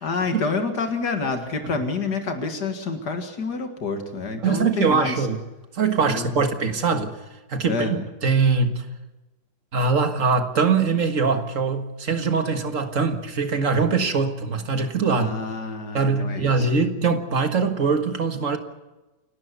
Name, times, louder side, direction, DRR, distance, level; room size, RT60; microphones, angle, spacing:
voice 1, 0.0-5.3 6.0-6.5 7.7-8.0 15.1-16.7, left 4 dB, 90° left, 2.5 m, -28 dB
voice 2, 4.4-5.4 5.7-7.1 7.5-8.0 8.2-8.8 9.7-15.3 15.9-18.6, right 5 dB, 55° right, 1.9 m, -22 dB
28.5 x 12.0 x 8.2 m
omnidirectional pair, 1.7 m